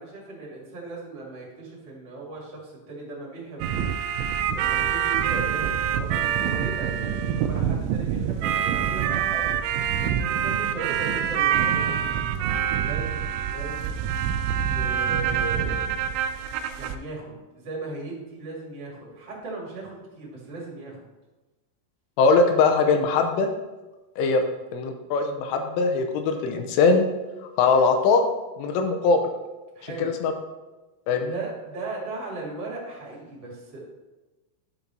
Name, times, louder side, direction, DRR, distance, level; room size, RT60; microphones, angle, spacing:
voice 1, 0.0-4.0 4.5-9.5 10.2-12.0 12.4-14.0 14.6-16.0 16.7-21.0 24.4-24.6 29.7-30.1 31.2-33.8, right 3 dB, 40° right, -4 dB, 2.6 m, -38 dB
sound 1, 3.6-17.0, right 8 dB, 85° right, 2.6 m, -25 dB
voice 2, 22.2-23.5 24.2-24.4 24.7-27.1 27.6-28.2 28.6-29.2 30.0-30.3 31.1-31.3, left 4 dB, 85° left, 5 dB, 3.1 m, -21 dB
12.0 x 5.3 x 4.4 m, 1.1 s
omnidirectional pair, 6.0 m